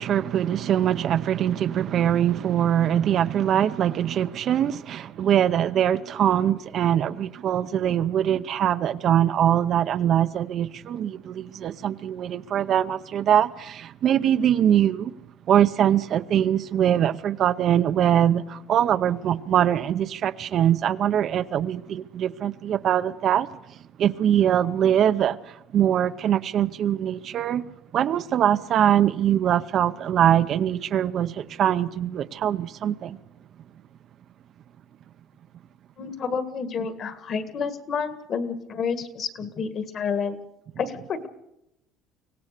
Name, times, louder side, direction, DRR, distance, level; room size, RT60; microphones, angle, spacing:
voice 1, 0.0-15.1 15.5-23.5 24.0-25.4 25.7-27.6 27.9-33.2, right 10 dB, 40° right, 0.7 m, -22 dB
voice 2, 36.0-40.4 40.8-41.3, left 6 dB, 35° left, 1.7 m, -29 dB
24.5 x 17.5 x 6.7 m
cardioid pair, 165°, 0 cm